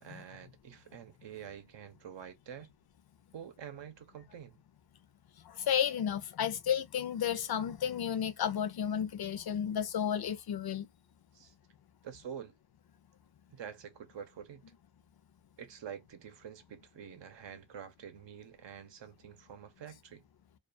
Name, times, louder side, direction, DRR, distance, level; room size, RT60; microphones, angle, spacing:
voice 1, 0.0-2.7 3.3-4.6 11.3-11.5 12.0-12.5 13.5-14.6 15.6-20.2, right 8 dB, 80° right, 0.7 m, -47 dB
voice 2, 5.5-10.9, left 9 dB, 60° left, 0.5 m, -32 dB
2.4 x 2.3 x 2.4 m
wide cardioid pair, 160°, 44 cm